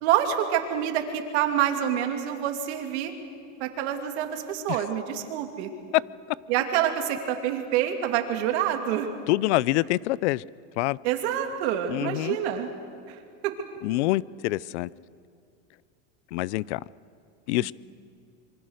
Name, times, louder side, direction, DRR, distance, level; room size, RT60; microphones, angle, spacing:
voice 1, 0.0-3.1 3.6-5.7 6.5-9.1 11.0-12.7 13.1-13.2 13.4-13.5, right 10 dB, 60° right, 2.7 m, -27 dB
voice 2, 9.3-10.4 10.8-11.0 11.9-12.4 13.8-14.9 16.3-16.8 17.5-17.7, left 18 dB, 65° left, 0.6 m, -26 dB
26.0 x 24.0 x 6.5 m
supercardioid pair, 160°, 38 cm